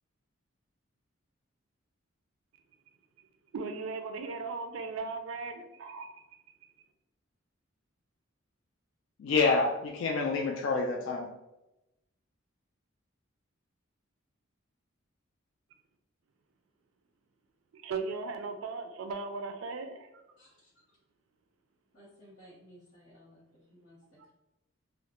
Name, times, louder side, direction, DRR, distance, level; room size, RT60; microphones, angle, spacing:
voice 1, 3.5-6.2 17.7-20.1, right 4 dB, 75° right, 6 dB, 0.4 m, -37 dB
voice 2, 9.2-11.3, left 4 dB, 65° left, 1 dB, 0.3 m, -27 dB
voice 3, 20.4-20.8 21.9-24.0, equal, 90° left, -8 dB, 0.9 m, -57 dB
2.3 x 2.0 x 2.9 m, 0.94 s
head